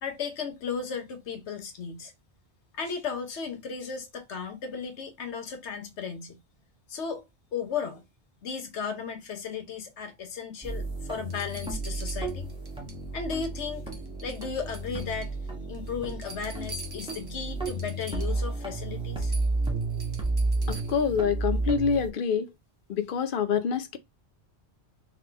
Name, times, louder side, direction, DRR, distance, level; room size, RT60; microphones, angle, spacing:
voice 1, 0.0-2.1 2.7-6.4 6.9-7.2 7.5-8.0 8.4-12.5 13.1-13.9 14.2-15.3 15.7-19.3, left 6 dB, 85° left, 1.2 m, -35 dB
sound 1, 10.6-22.1, right 2 dB, 5° right, 1.2 m, -32 dB
sound 2, 10.6-10.7 11.3-13.0 13.3-13.6 13.9-15.3 15.7-18.5 18.8-18.9 19.2-21.1 22.8-22.9, right 2 dB, 25° right, 0.9 m, -45 dB
voice 2, 20.7-22.5 22.9-24.0, left 6 dB, 55° left, 0.8 m, -26 dB
3.6 x 3.4 x 3.3 m
omnidirectional pair, 1.1 m